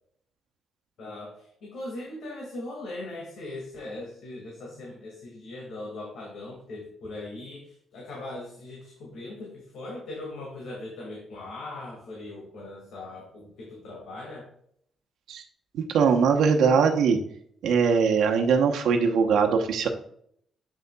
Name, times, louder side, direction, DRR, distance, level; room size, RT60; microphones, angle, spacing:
voice 1, 1.0-14.5, left 2 dB, 75° left, -2 dB, 2.1 m, -40 dB
voice 2, 15.7-17.2 17.6-19.9, right 6 dB, 80° right, 3 dB, 0.9 m, -21 dB
8.1 x 6.5 x 2.3 m, 0.65 s
cardioid pair, 175°, 0 cm